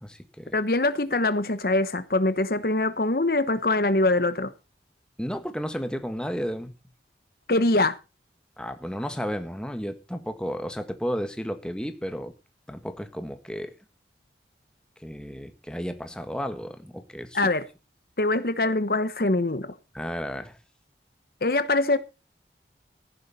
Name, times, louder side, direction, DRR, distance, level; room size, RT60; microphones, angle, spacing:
voice 1, 0.0-0.5 5.2-6.7 8.6-12.3 12.7-13.7 15.0-17.4 19.9-20.6, equal, 5° left, 1.6 m, -33 dB
voice 2, 0.5-4.5 7.5-8.0 17.3-17.6 18.2-19.7 21.4-22.0, left 2 dB, 55° left, 1.0 m, -23 dB
15.0 x 11.0 x 4.1 m
head